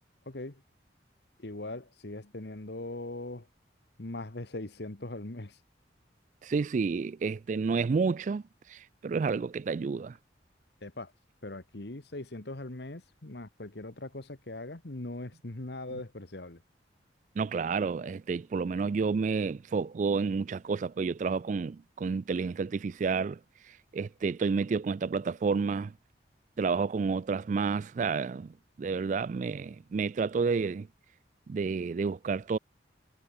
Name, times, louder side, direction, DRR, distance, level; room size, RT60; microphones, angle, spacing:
voice 1, 0.2-0.6 1.4-3.5 4.0-5.6 10.8-11.1 11.4-16.6, left 2 dB, 65° left, 1.5 m, -40 dB
voice 2, 6.4-8.4 8.7-10.2 17.4-23.4 23.9-25.9 26.6-30.9 31.5-32.6, right 5 dB, 40° right, 0.3 m, -30 dB
head